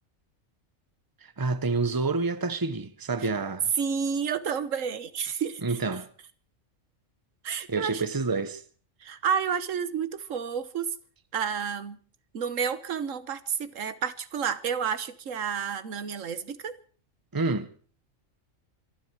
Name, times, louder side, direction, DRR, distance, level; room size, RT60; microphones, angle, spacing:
voice 1, 1.2-3.7 5.6-6.1 7.7-8.6 17.3-17.7, right 3 dB, 20° right, 0.9 m, -28 dB
voice 2, 3.8-5.6 7.4-8.0 9.0-10.9 11.3-12.0 12.3-16.8, right 7 dB, 80° right, 1.4 m, -30 dB
25.5 x 11.5 x 4.7 m
omnidirectional pair, 1.3 m